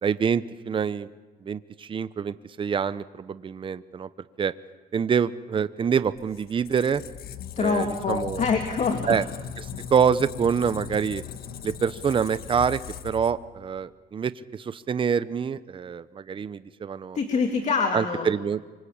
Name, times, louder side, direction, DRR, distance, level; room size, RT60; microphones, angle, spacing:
voice 1, 0.0-1.1 1.4-4.1 4.4-4.5 4.9-7.0 7.6-8.4 9.1-9.2 9.6-11.2 11.6-17.2 17.9-18.6, right 7 dB, 30° right, 14 dB, 0.8 m, -26 dB
Squeak, 6.1-13.8, left 8 dB, 65° left, 1.4 m, -39 dB
voice 2, 7.5-9.1 17.1-18.3, left 5 dB, 45° left, 4 dB, 2.7 m, -25 dB
25.0 x 25.0 x 8.7 m, 1.3 s
cardioid pair, 110°, 17 cm